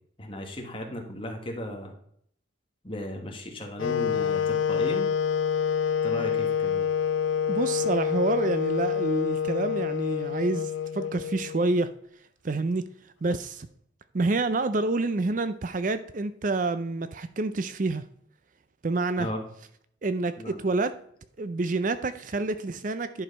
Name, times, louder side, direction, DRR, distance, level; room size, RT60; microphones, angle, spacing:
voice 1, 0.2-1.9 2.8-5.1 6.0-6.9 19.2-19.4 20.4-20.6, left 1 dB, 25° left, 2 dB, 1.6 m, -35 dB
Wind instrument woodwind instrument, 3.8-11.8, left 7 dB, 80° left, 0.4 m, -27 dB
voice 2, 7.5-11.9 12.4-12.9 13.2-13.7 14.1-18.0 18.8-19.3 20.0-21.0 21.4-23.2, right 3 dB, 40° right, 12 dB, 0.5 m, -28 dB
11.0 x 4.8 x 5.4 m, 0.65 s
head